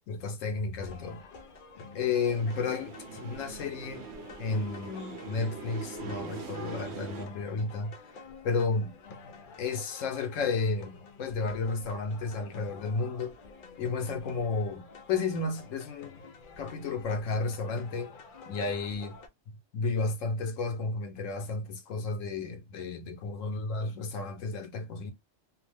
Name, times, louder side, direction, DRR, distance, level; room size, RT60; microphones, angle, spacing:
voice 1, 0.1-1.2 1.9-4.0 4.4-7.9 8.4-8.9 9.6-13.4 13.8-16.2 16.6-18.1 18.5-19.2 19.7-25.1, left 4 dB, 90° left, 1.1 m, -32 dB
sound 1, 0.8-19.3, left 4 dB, 55° left, 0.6 m, -49 dB
sound 2, 2.2-7.3, right 4 dB, 60° right, 0.9 m, -42 dB
2.8 x 2.0 x 3.2 m
omnidirectional pair, 1.3 m